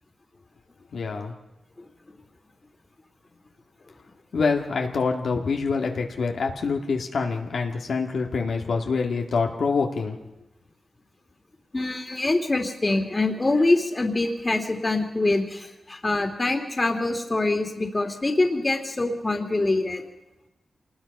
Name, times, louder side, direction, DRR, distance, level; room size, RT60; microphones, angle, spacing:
voice 1, 0.9-1.3 4.3-10.1, left 4 dB, 80° left, 2 dB, 2.0 m, -26 dB
voice 2, 11.7-20.0, left 2 dB, 30° left, 5 dB, 2.5 m, -24 dB
26.5 x 20.0 x 5.4 m, 1.0 s
cardioid pair, 70°, 0 cm